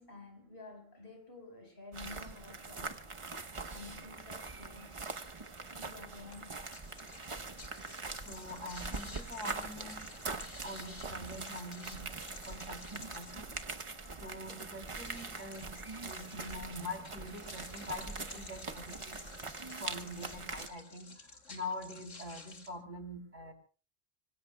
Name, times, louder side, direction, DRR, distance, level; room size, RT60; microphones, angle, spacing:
voice 1, 0.0-3.0 3.7-5.1 5.7-6.6 11.2-11.4, left 2 dB, 50° left, 5.1 m, -51 dB
sound 1, 1.9-20.7, right 3 dB, 30° right, 0.8 m, -43 dB
sound 2, 6.3-22.7, left 3 dB, 80° left, 2.6 m, -53 dB
voice 2, 8.2-10.0 10.3-12.1 12.5-13.5 14.2-15.7 16.0-19.3 19.8-23.5, left 2 dB, 80° right, 3.5 m, -44 dB
26.0 x 25.0 x 2.2 m
omnidirectional pair, 1.3 m